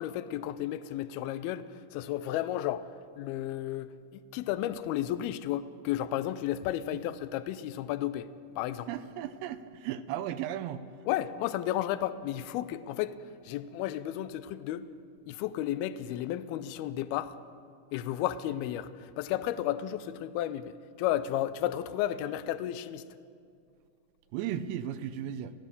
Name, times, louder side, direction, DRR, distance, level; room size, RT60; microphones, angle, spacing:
voice 1, 0.0-2.9 3.2-8.3 8.6-8.9 11.1-13.2 13.4-14.9 15.3-17.4 17.9-23.1, left 12 dB, 85° left, 12 dB, 2.2 m, -33 dB
voice 2, 8.9-10.8 24.3-25.5, right 10 dB, 80° right, 10 dB, 2.9 m, -35 dB
29.0 x 16.0 x 6.8 m, 2.3 s
omnidirectional pair, 5.2 m